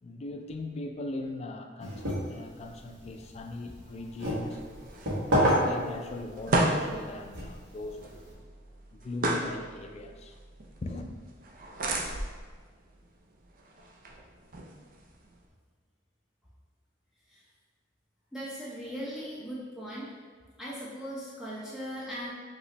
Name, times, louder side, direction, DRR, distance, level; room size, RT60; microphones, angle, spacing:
voice 1, 0.0-4.9 5.3-8.3 8.9-10.3 10.8-11.1, left 2 dB, 35° left, 5 dB, 0.3 m, -39 dB
sound 1, 1.8-8.3, equal, 80° right, 1.4 m, -32 dB
sound 2, 4.1-15.4, right 1 dB, 45° right, 0.5 m, -35 dB
voice 2, 18.3-20.1 20.6-22.3, equal, ahead, -8 dB, 0.6 m, -38 dB
5.2 x 3.0 x 3.2 m, 1.5 s
head